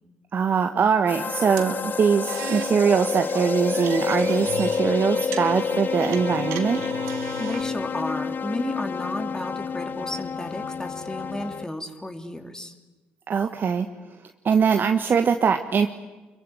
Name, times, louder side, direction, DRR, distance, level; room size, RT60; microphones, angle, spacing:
voice 1, 0.3-6.8 13.3-13.9 14.4-15.9, right 6 dB, 45° right, 7 dB, 1.5 m, -22 dB
sound 1, 1.1-11.6, left 5 dB, 45° left, 0.9 m, -28 dB
sound 2, 1.6-7.6, right 11 dB, 70° right, 1.9 m, -38 dB
voice 2, 7.4-12.7, left 1 dB, 15° left, 6 dB, 3.3 m, -32 dB
25.5 x 22.5 x 9.5 m, 1.2 s
hypercardioid pair, 45°, 5 cm